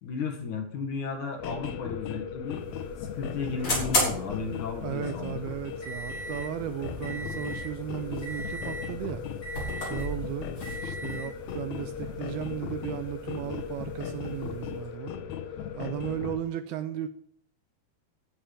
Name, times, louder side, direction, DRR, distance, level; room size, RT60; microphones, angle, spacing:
voice 1, 0.0-2.7 3.0-5.5, left 4 dB, 55° left, 2.7 m, -34 dB
sound 1, 1.4-16.4, left 8 dB, 85° left, 1.6 m, -37 dB
sound 2, 2.4-14.9, left 1 dB, 30° left, 7.1 m, -36 dB
voice 2, 4.8-9.2 9.8-10.5 10.8-15.1 15.8-17.1, right 12 dB, 80° right, 2.3 m, -35 dB
15.5 x 7.3 x 7.2 m
omnidirectional pair, 5.0 m